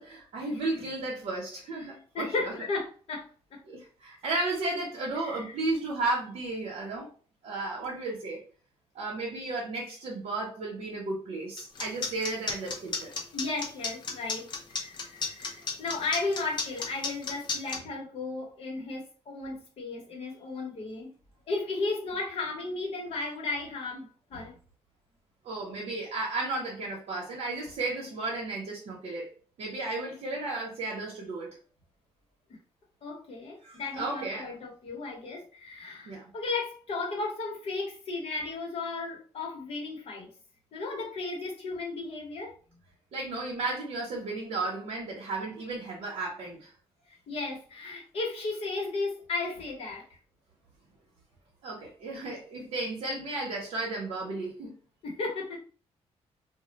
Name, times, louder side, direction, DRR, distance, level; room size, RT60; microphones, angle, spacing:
voice 1, 0.0-2.5 3.6-7.1 7.4-8.4 8.9-13.1 25.4-29.3 29.6-31.5 33.6-34.5 36.1-36.3 43.1-46.7 51.6-54.7, right 2 dB, 70° right, -4 dB, 0.8 m, -34 dB
voice 2, 2.1-3.6 5.2-5.5 13.3-21.1 21.5-24.5 33.0-40.3 40.7-42.5 47.1-50.1 55.0-55.6, left 3 dB, 60° left, -2 dB, 1.1 m, -35 dB
sound 1, 11.6-17.8, left 4 dB, 40° left, 0.6 m, -32 dB
2.3 x 2.2 x 3.9 m, 0.40 s
wide cardioid pair, 165°, 11 cm